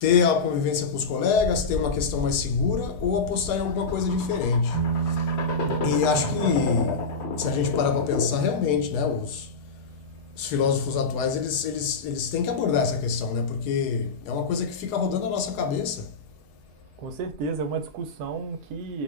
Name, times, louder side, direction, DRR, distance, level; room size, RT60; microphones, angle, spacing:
voice 1, 0.0-5.2 5.8-7.1 7.4-9.5 10.4-16.1, left 6 dB, 90° left, 1.1 m, -25 dB
sound 1, 1.3-8.5, left 4 dB, 60° left, 0.7 m, -32 dB
sound 2, 4.7-13.8, right 6 dB, 60° right, 1.0 m, -34 dB
voice 2, 5.6-6.5 17.0-19.0, right 4 dB, 85° right, 1.1 m, -32 dB
2.6 x 2.3 x 3.3 m
omnidirectional pair, 1.6 m